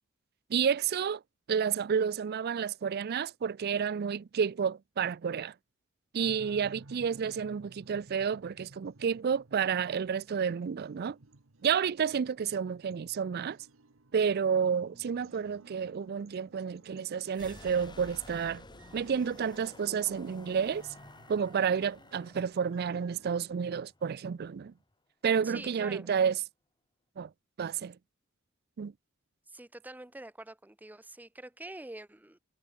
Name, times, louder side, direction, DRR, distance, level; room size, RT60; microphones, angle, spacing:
voice 1, 0.5-1.2 1.5-5.5 6.1-11.2 11.6-13.6 14.1-18.6 18.9-20.9 21.3-24.7 25.2-26.4 27.2-27.3 27.6-28.0 28.8-28.9, right 7 dB, 50° right, 0.4 m, -30 dB
sound 1, 6.2-23.4, right 2 dB, 80° right, 1.4 m, -58 dB
sound 2, 14.8-22.3, left 1 dB, 55° left, 6.3 m, -65 dB
sound 3, 17.2-24.9, left 2 dB, 20° left, 2.2 m, -53 dB
voice 2, 25.4-26.1 29.5-32.4, right 1 dB, 10° right, 0.7 m, -46 dB
head